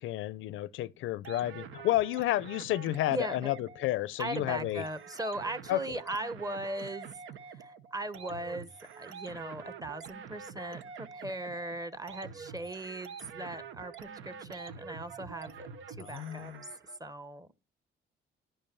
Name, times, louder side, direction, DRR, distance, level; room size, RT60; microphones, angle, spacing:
voice 1, 0.0-4.8 5.7-6.0 16.0-16.6, left 15 dB, 85° left, 0.6 m, -31 dB
sound 1, 1.2-17.0, right 6 dB, 80° right, 1.1 m, -46 dB
voice 2, 3.1-3.5 4.2-7.1 7.5-8.7 9.0-15.7 16.0-16.5 17.0-17.6, right 1 dB, 20° right, 1.1 m, -38 dB
11.5 x 5.4 x 7.1 m
cardioid pair, 90°, 20 cm